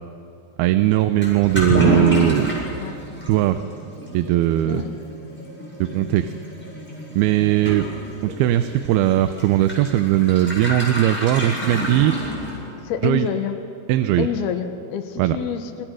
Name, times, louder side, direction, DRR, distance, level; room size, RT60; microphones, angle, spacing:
voice 1, 0.6-2.5 3.3-3.6 4.1-4.8 5.8-6.3 7.2-7.9 8.2-12.2 13.0-13.3 13.9-14.3 15.2-15.4, right 13 dB, 85° right, 10 dB, 2.7 m, -19 dB
Toilet flush / Liquid, 1.2-12.8, equal, 5° left, 7.2 m, -28 dB
voice 2, 12.8-13.6 14.2-15.9, left 7 dB, 90° left, 8 dB, 3.3 m, -27 dB
28.0 x 25.5 x 6.3 m, 2.7 s
omnidirectional pair, 4.3 m